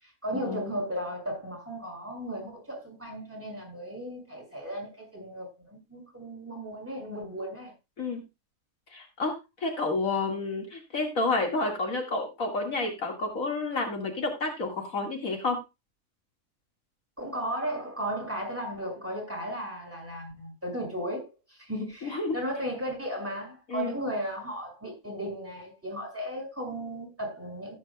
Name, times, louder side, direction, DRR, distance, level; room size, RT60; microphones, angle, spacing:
voice 1, 0.0-7.7 17.2-27.8, right 1 dB, 10° right, 5.9 m, -35 dB
voice 2, 8.9-15.6 22.0-22.4 23.7-23.9, left 3 dB, 70° left, 2.5 m, -30 dB
16.0 x 8.8 x 2.3 m
omnidirectional pair, 1.5 m